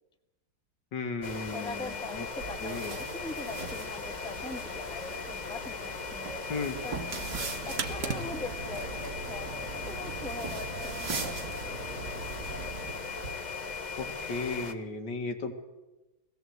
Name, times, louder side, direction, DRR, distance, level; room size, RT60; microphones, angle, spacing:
voice 1, 0.9-2.3 2.6-3.0 6.5-6.8 14.0-15.5, left 4 dB, 65° left, 6 dB, 2.4 m, -35 dB
sound 1, 1.2-14.7, left 4 dB, 35° left, 0.7 m, -38 dB
voice 2, 1.5-6.4 6.8-7.0 7.7-12.2, left 2 dB, 5° left, 5 dB, 1.1 m, -42 dB
sound 2, 2.4-13.4, right 4 dB, 70° right, 3.1 m, -42 dB
sound 3, 7.1-13.0, right 5 dB, 45° right, 1.5 m, -40 dB
20.5 x 17.0 x 7.9 m, 1.1 s
omnidirectional pair, 2.1 m